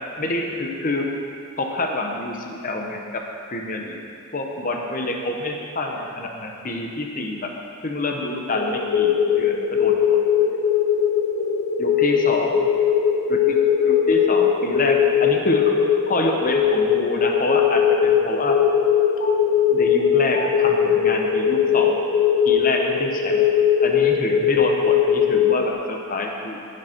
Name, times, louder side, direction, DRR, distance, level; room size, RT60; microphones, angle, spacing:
voice 1, 0.2-1.1 1.6-4.0 4.3-7.5 7.8-10.2 10.4-10.5 11.8-12.7 13.3-13.6 13.8-15.8 16.1-18.6 19.7-22.0 22.4-23.5 23.8-26.6, left 2 dB, 40° left, 1 dB, 1.0 m, -27 dB
sound 1, 8.5-25.7, left 8 dB, 60° left, 0.9 m, -20 dB
15.0 x 6.3 x 4.5 m, 2.5 s
head